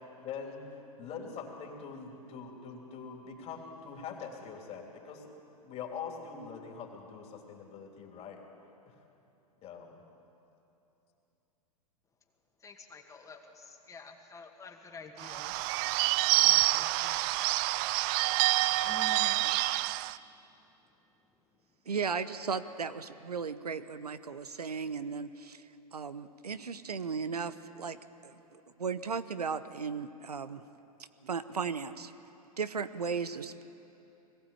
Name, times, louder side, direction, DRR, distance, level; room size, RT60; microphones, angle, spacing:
voice 1, 0.2-0.7 1.0-5.2 5.6-8.4 8.9-9.0 9.6-10.0, left 6 dB, 35° left, 1 dB, 3.3 m, -43 dB
voice 2, 12.6-15.7 16.4-17.5 18.8-19.7, left 4 dB, 15° left, 3 dB, 2.0 m, -49 dB
Bird / Bell, 15.2-20.2, right 18 dB, 40° right, 0.4 m, -27 dB
voice 3, 21.9-25.6 25.9-28.0 28.2-30.6 31.2-32.1 32.6-33.6, right 5 dB, 90° right, 12 dB, 0.8 m, -36 dB
21.0 x 15.5 x 8.6 m, 2.9 s
hypercardioid pair, 105°, 19 cm